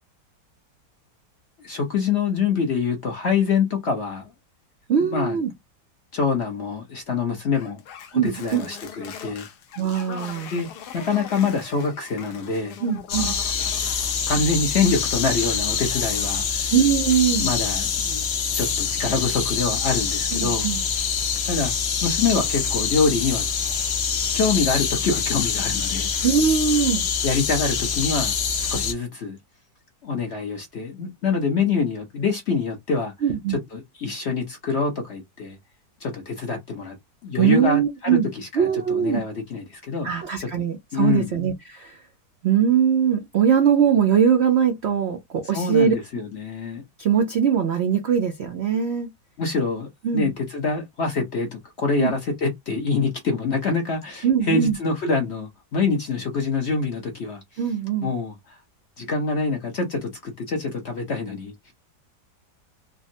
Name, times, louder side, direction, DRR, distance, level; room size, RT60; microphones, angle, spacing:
voice 1, 1.6-4.3 5.0-5.4 6.1-7.8 8.1-9.5 10.5-10.7 10.9-12.8 14.3-16.7 17.4-18.2 18.5-20.7 21.4-21.7 22.0-23.4 24.3-26.1 27.2-29.4 30.0-33.1 33.5-35.6 36.0-37.0 37.2-40.1 40.4-40.5 40.9-41.3 45.5-46.8 49.4-49.9 50.1-57.4 58.0-58.6 59.0-61.5, left 4 dB, 55° left, 0.8 m, -25 dB
voice 2, 4.9-5.5 8.1-8.6 9.8-10.5 12.8-13.4 16.7-17.5 20.3-20.8 26.2-27.1 33.2-33.6 37.4-38.3 38.5-39.2 40.0-42.0 42.4-45.9 47.0-49.1 50.0-50.3 52.0-52.1 54.2-54.8 57.6-58.1, right 8 dB, 80° right, 0.5 m, -21 dB
sound 1, 7.5-14.3 14.5-16.5, left 8 dB, 70° left, 1.1 m, -41 dB
sound 2, 13.1-28.9, left 6 dB, 85° left, 0.5 m, -25 dB
3.5 x 2.1 x 2.6 m
omnidirectional pair, 1.9 m